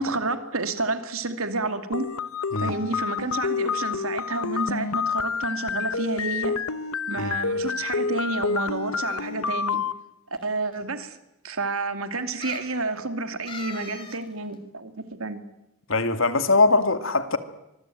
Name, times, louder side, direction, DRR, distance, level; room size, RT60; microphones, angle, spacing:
voice 1, 0.0-2.1 2.6-6.6 7.1-9.8 10.4-11.2 11.4-15.4, right 3 dB, 80° right, 2.5 m, -30 dB
sound 1, 1.9-9.9, left 5 dB, 90° left, 1.1 m, -28 dB
sound 2, 9.0-9.5 10.3-10.4 10.7-10.8 12.4-12.8 13.5-14.2 14.5-14.6, left 3 dB, 25° left, 3.0 m, -40 dB
voice 2, 15.9-17.4, left 3 dB, 70° left, 2.2 m, -21 dB
25.0 x 21.0 x 9.1 m
head